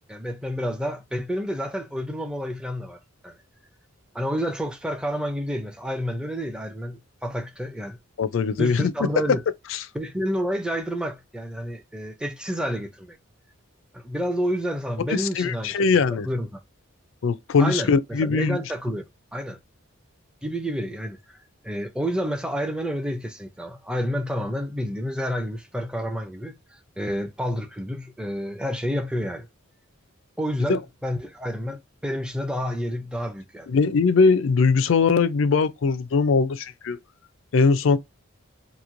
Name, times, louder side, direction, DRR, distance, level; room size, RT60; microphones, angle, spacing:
voice 1, 0.1-3.4 4.1-8.0 8.6-9.4 9.9-13.2 13.9-16.5 17.6-19.0 19.3-19.6 20.4-29.5 30.4-33.7, equal, 5° right, 0.5 m, -29 dB
voice 2, 8.2-8.9 9.7-9.8 15.1-16.3 17.2-18.6 30.7-30.8 33.7-37.0 37.5-38.0, left 4 dB, 65° left, 0.4 m, -21 dB
3.0 x 2.6 x 2.5 m
head